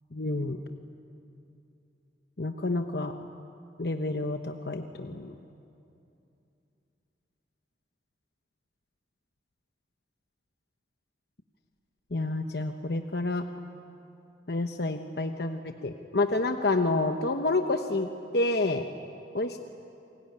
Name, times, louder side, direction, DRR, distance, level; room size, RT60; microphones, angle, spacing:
voice 1, 0.1-0.6 2.4-3.1 3.8-5.3 12.1-13.4 14.5-18.9 19.3-19.6, left 2 dB, 60° left, 6 dB, 1.0 m, -29 dB
29.0 x 21.0 x 9.8 m, 2.7 s
head